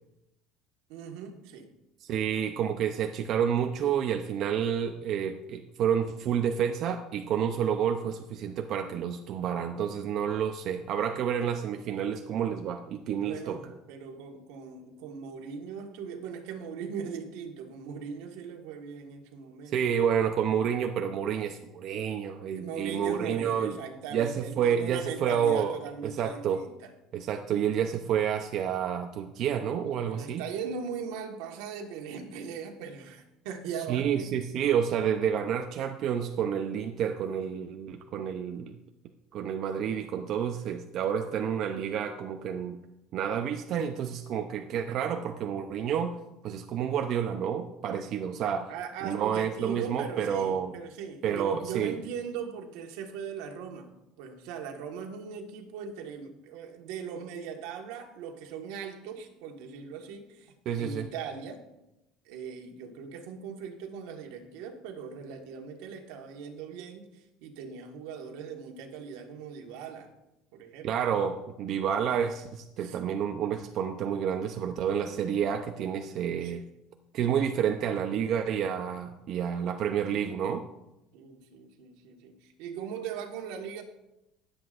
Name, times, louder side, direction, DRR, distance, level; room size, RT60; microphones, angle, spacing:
voice 1, 0.9-1.7 13.2-19.8 22.5-26.9 30.0-34.3 48.7-53.9 54.2-61.6 62.2-70.1 70.5-70.9 72.8-73.0 76.4-76.5 81.1-83.8, right 6 dB, 85° right, 3 dB, 1.5 m, -40 dB
voice 2, 2.0-13.6 19.7-23.8 24.1-25.7 26.0-26.6 27.1-30.4 33.9-38.7 39.3-42.8 43.1-46.2 46.4-48.7 49.0-50.7 51.2-52.0 60.7-61.1 70.8-76.6 77.1-80.6, right 8 dB, 50° right, 5 dB, 0.6 m, -29 dB
20.0 x 7.9 x 2.5 m, 0.92 s
cardioid pair, 150°, 0 cm